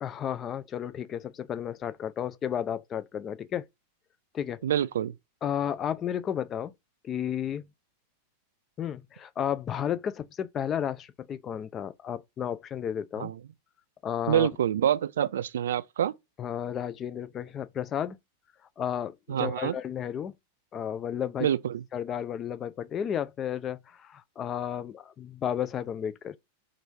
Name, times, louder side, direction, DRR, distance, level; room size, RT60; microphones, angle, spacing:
voice 1, 0.0-3.6 4.3-4.6 5.4-6.7 7.0-7.7 8.8-13.3 14.0-14.5 16.4-18.2 18.8-20.3 20.7-21.5 21.9-26.4, left 9 dB, 25° left, 0.3 m, -32 dB
voice 2, 4.6-5.1 13.2-13.4 14.3-16.1 19.3-19.8 21.4-21.8, right 10 dB, 60° right, 0.3 m, -26 dB
3.0 x 2.6 x 4.4 m
figure-of-eight pair, 90°, 0 cm